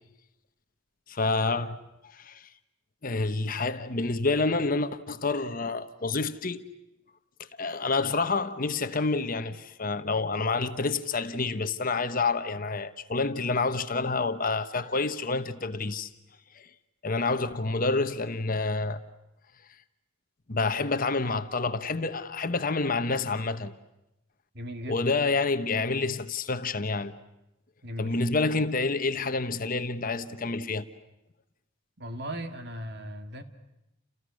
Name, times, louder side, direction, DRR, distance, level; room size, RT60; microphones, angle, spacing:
voice 1, 1.1-1.8 2.1-2.5 3.0-6.7 7.6-16.1 16.5-16.7 17.0-19.0 20.5-23.7 24.9-27.1 28.0-30.9, left 3 dB, 40° left, 1.1 m, -28 dB
voice 2, 24.5-25.1 27.8-28.2 32.0-33.4, equal, 55° right, 2.4 m, -37 dB
30.0 x 29.5 x 6.4 m
head